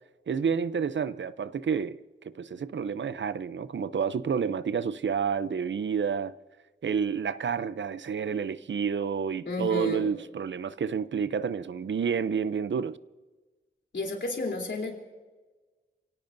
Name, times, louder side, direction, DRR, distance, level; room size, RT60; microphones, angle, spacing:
voice 1, 0.3-2.0 2.2-6.4 6.8-13.0, right 6 dB, 70° right, 0.6 m, -29 dB
voice 2, 9.4-10.1 13.9-14.9, left 3 dB, 65° left, 3.4 m, -31 dB
29.5 x 17.5 x 2.6 m
wide cardioid pair, 115°, 20 cm